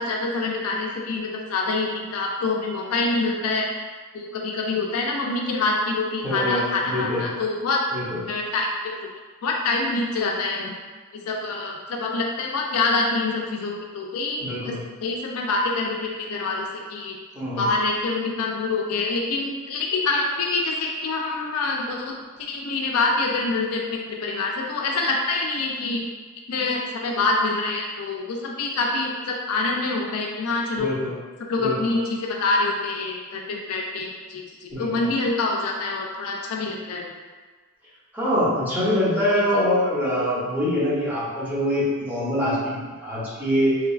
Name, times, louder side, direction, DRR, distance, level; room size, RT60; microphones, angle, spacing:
voice 1, 0.0-3.7 4.1-7.8 8.3-8.9 9.4-10.8 11.2-14.7 15.0-17.2 17.6-26.0 26.5-30.9 31.5-37.1 39.3-39.4, left 3 dB, 80° left, 0 dB, 0.4 m, -26 dB
voice 2, 6.2-7.2 7.9-8.2 14.4-14.8 17.4-17.7 30.8-31.1 31.6-31.9 34.7-35.1 38.1-43.8, equal, 10° right, -10 dB, 0.7 m, -24 dB
3.0 x 2.3 x 2.3 m, 1.4 s
head